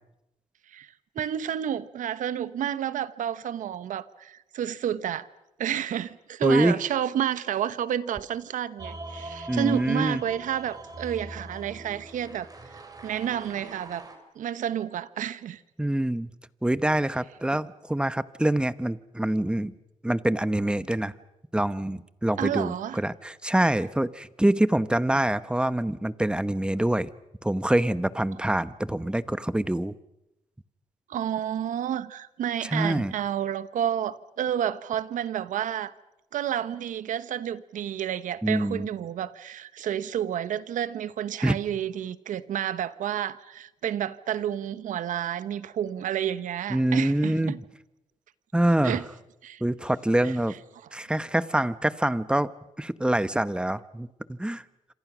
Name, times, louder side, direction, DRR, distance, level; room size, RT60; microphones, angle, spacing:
voice 1, 1.1-5.3 5.6-12.5 13.0-14.0 14.3-15.6 22.4-23.0 31.1-35.9 36.3-47.6 48.8-49.0 49.4-49.6 50.2-50.4, right 10 dB, 80° right, 1.1 m, -30 dB
voice 2, 6.4-6.7 9.5-10.2 15.8-16.3 16.6-19.7 20.0-21.1 21.5-27.1 27.4-29.9 32.6-33.1 38.4-38.9 41.4-41.5 46.7-47.5 48.5-49.0 49.6-50.5 50.9-52.5 52.8-54.6, right 1 dB, 5° right, 0.9 m, -25 dB
sound 1, 8.8-14.2, right 2 dB, 30° right, 4.3 m, -42 dB
27.0 x 26.5 x 6.2 m
cardioid pair, 90°, 13 cm